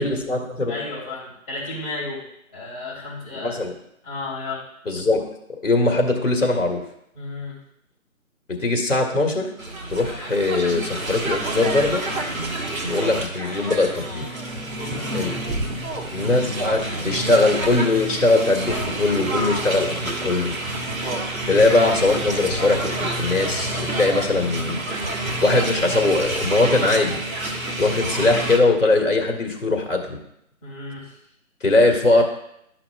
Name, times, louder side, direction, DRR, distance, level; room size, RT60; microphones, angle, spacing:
voice 1, 0.0-0.7 3.4-3.7 4.9-5.2 5.6-6.8 8.5-9.5 9.9-12.0 12.9-14.3 15.1-15.3 16.1-20.5 21.5-24.8 25.4-27.2 27.8-30.2 31.6-32.2, left 2 dB, 60° left, 2 dB, 1.9 m, -20 dB
voice 2, 0.7-2.2 2.5-3.6 4.0-4.6 7.1-7.5 14.8-15.3 16.2-16.5 30.6-31.2 32.1-32.2, left 3 dB, 25° left, -8 dB, 3.1 m, -33 dB
sound 1, 9.6-28.6, right 2 dB, 70° right, 1.5 m, -28 dB
12.5 x 5.8 x 2.3 m, 0.77 s
figure-of-eight pair, 155°, 42 cm